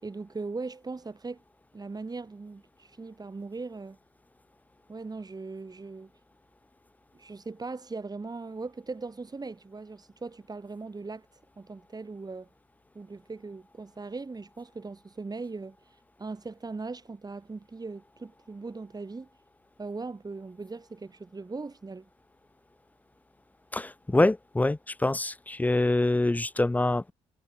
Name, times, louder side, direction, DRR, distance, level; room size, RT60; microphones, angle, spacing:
voice 1, 0.0-1.4 1.7-4.0 4.9-6.1 7.1-11.3 11.6-12.5 12.9-19.3 19.8-22.0, right 3 dB, 30° right, 5.0 m, -39 dB
voice 2, 23.7-27.1, left 2 dB, 10° left, 0.6 m, -25 dB
hypercardioid pair, 45°, 14 cm